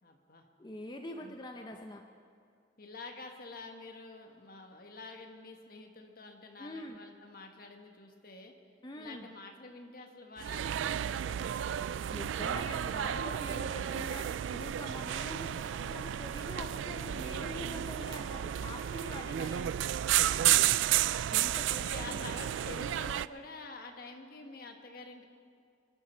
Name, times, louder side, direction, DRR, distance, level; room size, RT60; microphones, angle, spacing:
voice 1, 0.0-0.4 1.2-1.4 2.8-8.5 9.0-11.8 21.7-25.2, left 3 dB, 50° left, 3 dB, 1.5 m, -48 dB
voice 2, 0.6-2.1 6.6-7.0 8.8-9.3 12.1-19.8 21.3-22.3, left 1 dB, 20° left, 4 dB, 0.6 m, -44 dB
sound 1, 10.4-23.3, right 11 dB, 80° right, 0.3 m, -32 dB
24.0 x 11.5 x 4.4 m, 2.3 s
head